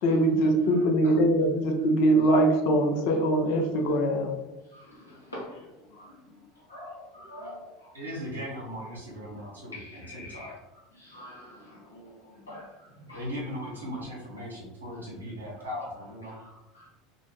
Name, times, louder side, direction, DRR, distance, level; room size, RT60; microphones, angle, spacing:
voice 1, 0.0-4.3, right 1 dB, 55° left, 3 dB, 0.5 m, -22 dB
voice 2, 0.6-1.2 4.7-6.3 6.7-7.9 9.7-10.5 11.0-12.7 13.1-13.3 16.4-16.9, left 1 dB, 85° left, -5 dB, 0.8 m, -45 dB
voice 3, 7.9-10.5 13.1-16.4, equal, 90° right, -5 dB, 0.9 m, -38 dB
2.5 x 2.1 x 3.0 m, 0.98 s
figure-of-eight pair, 75°, 0 cm